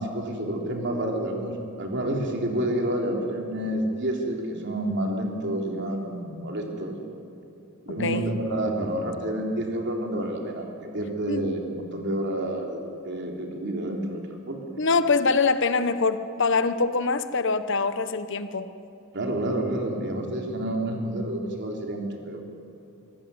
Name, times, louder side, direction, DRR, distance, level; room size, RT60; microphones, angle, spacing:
voice 1, 0.0-7.0 7.9-14.2 14.5-14.6 19.1-22.4, right 1 dB, 55° right, 1 dB, 3.6 m, -29 dB
voice 2, 14.8-18.7, left 4 dB, 60° left, 11 dB, 1.0 m, -24 dB
25.0 x 16.5 x 9.7 m, 2.7 s
head